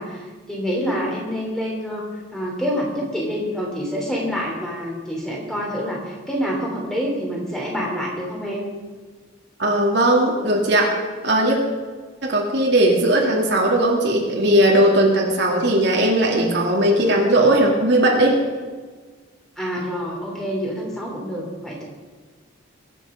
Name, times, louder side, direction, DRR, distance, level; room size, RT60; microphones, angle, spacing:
voice 1, 0.0-2.0 2.3-8.7 19.6-21.8, equal, 5° left, -2 dB, 3.1 m, -27 dB
voice 2, 9.6-11.0 11.2-11.6 12.2-18.4, right 1 dB, 55° right, -1 dB, 2.5 m, -18 dB
22.5 x 8.6 x 5.1 m, 1.5 s
head